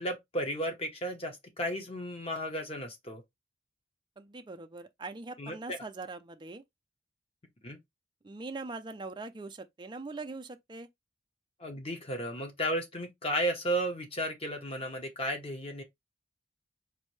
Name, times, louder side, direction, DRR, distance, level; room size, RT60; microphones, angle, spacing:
voice 1, 0.0-3.2 5.4-5.8 7.6-7.8 11.6-15.8, equal, 30° left, 1.0 m, -34 dB
voice 2, 4.2-6.6 8.2-10.9, right 3 dB, 25° right, 0.4 m, -42 dB
4.3 x 2.7 x 3.1 m
head